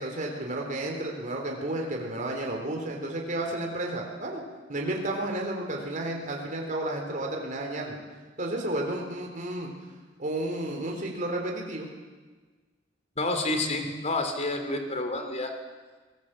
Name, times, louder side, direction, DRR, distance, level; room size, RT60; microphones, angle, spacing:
voice 1, 0.0-4.4 4.7-8.0 8.4-9.7 10.2-11.9, right 1 dB, 45° right, 1 dB, 3.7 m, -32 dB
voice 2, 13.2-15.5, left 2 dB, 35° left, 6 dB, 3.1 m, -29 dB
23.5 x 19.0 x 7.6 m, 1.4 s
head